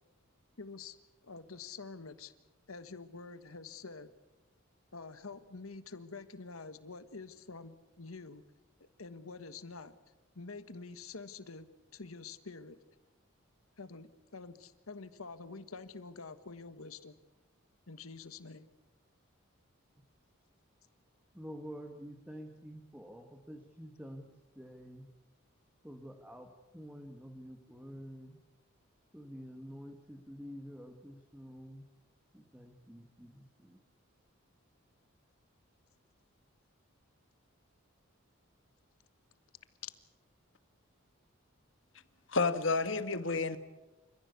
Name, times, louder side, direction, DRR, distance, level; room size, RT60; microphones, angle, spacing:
voice 1, 0.6-1.0 1.2-2.3 2.7-4.1 4.9-8.4 8.8-10.0 10.3-11.7 11.9-12.8 13.8-17.2 17.9-18.7 39.8-39.9, left 4 dB, 85° left, 1.4 m, -47 dB
voice 2, 21.3-25.1 25.8-28.4 29.1-31.9 32.3-33.8, equal, 5° right, 1.6 m, -48 dB
voice 3, 42.3-43.6, left 3 dB, 60° left, 1.4 m, -30 dB
28.5 x 15.0 x 8.3 m
head